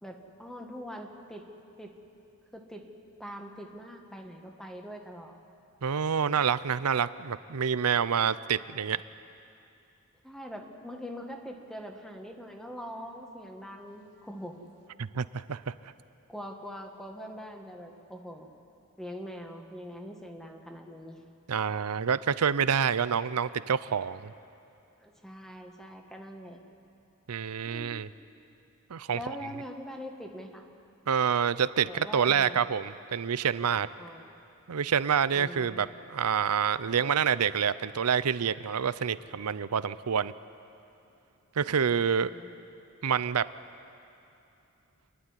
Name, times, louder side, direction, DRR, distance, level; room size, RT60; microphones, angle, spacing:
voice 1, 0.0-1.5 1.8-2.0 2.5-2.8 3.2-5.4 10.2-14.6 16.3-18.5 19.0-21.2 25.0-26.6 27.7-27.9 29.1-30.7 31.9-32.6 34.0-34.3 35.3-35.9 42.2-42.5, equal, ahead, 3 dB, 1.6 m, -43 dB
voice 2, 5.8-9.0 15.0-15.7 21.5-24.3 27.3-28.1 28.9-29.2 31.1-33.9 34.7-40.3 41.6-42.3 43.0-43.5, right 7 dB, 85° right, 16 dB, 0.6 m, -27 dB
28.0 x 11.5 x 9.7 m, 2.7 s
head